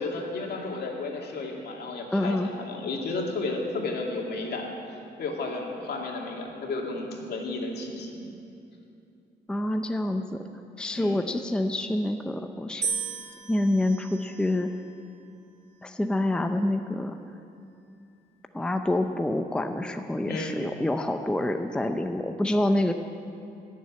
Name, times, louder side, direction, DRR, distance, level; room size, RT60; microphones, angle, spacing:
voice 1, 0.0-4.7 5.2-8.3 10.9-11.2 20.3-20.5, left 3 dB, 70° left, 0 dB, 2.4 m, -32 dB
voice 2, 2.1-2.5 9.5-10.4 10.8-12.9 13.5-14.7 15.8-17.2 18.5-22.9, left 1 dB, 5° left, 6 dB, 0.5 m, -27 dB
sound 1, 12.8-15.0 15.8-16.4, right 6 dB, 40° right, 1.7 m, -36 dB
16.5 x 7.5 x 9.7 m, 2.6 s
cardioid pair, 135°, 17 cm